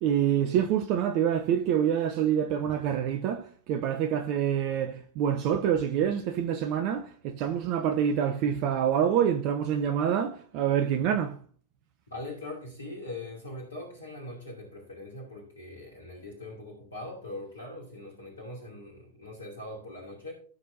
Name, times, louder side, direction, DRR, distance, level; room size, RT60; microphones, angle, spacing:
voice 1, 0.0-11.4, right 9 dB, 45° right, 0.7 m, -26 dB
voice 2, 12.1-20.3, left 2 dB, 70° left, 2.6 m, -41 dB
17.0 x 6.4 x 2.7 m
figure-of-eight pair, 90°, 0 cm